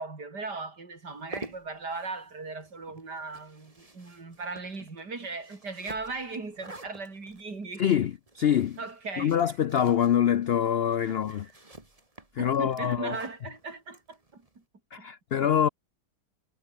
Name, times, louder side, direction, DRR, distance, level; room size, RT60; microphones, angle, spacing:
voice 1, 0.0-7.8 8.8-9.4 11.1-11.5 12.4-14.5 15.0-15.1, right 3 dB, 85° right, 4.5 m, -38 dB
sound 1, 1.1-14.6, right 2 dB, 20° right, 2.7 m, -49 dB
voice 2, 7.8-8.8 9.2-11.5 12.3-13.2 14.9-15.7, left 9 dB, 90° left, 0.5 m, -25 dB
omnidirectional pair, 1.7 m